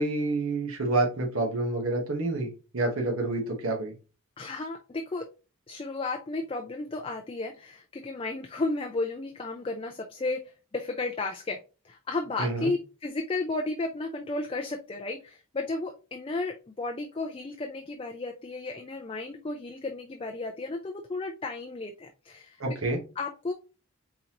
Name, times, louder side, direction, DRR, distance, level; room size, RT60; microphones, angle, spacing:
voice 1, 0.0-3.9 12.4-12.7 22.6-23.0, right 2 dB, 75° right, 1 dB, 1.1 m, -28 dB
voice 2, 4.4-5.3 5.7-11.6 11.8-22.6 23.2-23.5, left 3 dB, 25° left, 3 dB, 0.4 m, -33 dB
4.5 x 3.8 x 2.8 m, 0.32 s
head